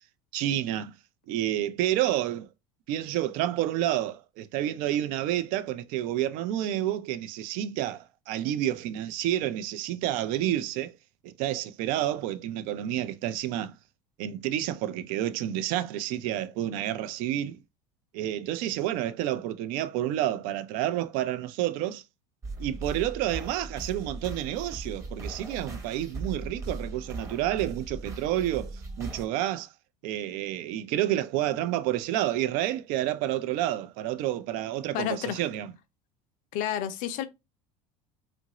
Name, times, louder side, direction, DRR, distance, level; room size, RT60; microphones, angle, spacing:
voice 1, 0.3-0.9 1.3-2.5 2.9-10.9 11.2-13.7 14.2-17.6 18.1-22.0 22.6-29.7 30.0-35.7, right 12 dB, 65° right, 0.4 m, -29 dB
sound 1, 22.4-29.3, right 2 dB, 20° right, 0.8 m, -38 dB
voice 2, 34.9-35.4 36.5-37.2, left 10 dB, 60° left, 0.5 m, -30 dB
2.8 x 2.5 x 2.9 m
supercardioid pair, 100°, 15 cm